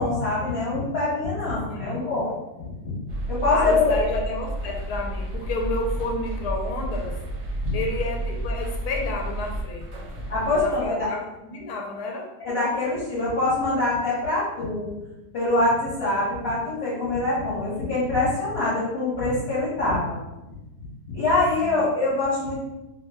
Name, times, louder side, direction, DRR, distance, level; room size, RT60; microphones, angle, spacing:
voice 1, 0.0-2.9 3.3-3.9 7.6-7.7 10.3-11.1 12.4-14.9 15.3-20.2 21.1-22.6, left 2 dB, 45° left, -9 dB, 1.1 m, -24 dB
voice 2, 1.7-2.0 3.5-7.2 7.7-10.0 10.6-12.3 21.6-21.8, left 2 dB, 75° left, 1 dB, 1.1 m, -31 dB
sound 1, 3.1-10.9, right 1 dB, 60° right, 0.8 m, -31 dB
2.8 x 2.2 x 3.3 m, 0.99 s
omnidirectional pair, 1.8 m